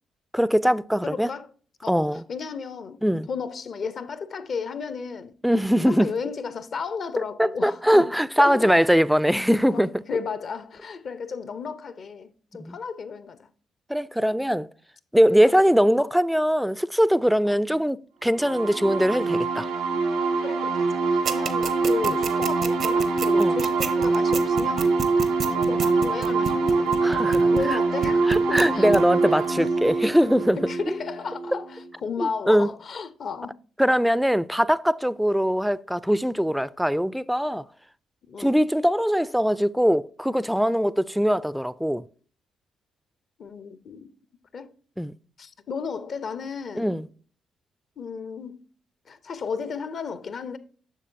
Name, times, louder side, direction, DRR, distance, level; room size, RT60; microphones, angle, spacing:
voice 1, 0.3-1.3 1.9-2.2 3.0-3.3 5.4-6.1 7.4-10.0 12.6-12.8 13.9-14.7 15.1-18.0 18.2-19.7 22.1-22.2 23.4-23.6 27.0-27.8 28.3-30.6 32.2-32.7 33.8-37.6 38.4-42.0 45.0-45.1 46.8-47.1, equal, ahead, 0.3 m, -21 dB
voice 2, 1.0-1.5 1.8-3.0 3.3-5.3 5.9-8.1 8.4-8.8 9.7-13.5 15.4-15.5 17.4-17.6 20.4-25.0 25.2-27.2 27.5-28.9 29.3-29.4 30.6-33.6 38.3-38.5 43.4-44.1 44.5-44.7 45.4-47.0 48.0-48.6 49.1-50.6, left 5 dB, 55° left, 0.6 m, -34 dB
sound 1, 18.4-31.9, right 4 dB, 85° right, 1.5 m, -24 dB
sound 2, 21.3-27.7 28.0-28.6 28.9-29.0, right 6 dB, 65° right, 0.7 m, -29 dB
7.4 x 6.4 x 2.6 m
supercardioid pair, 55°, 0 cm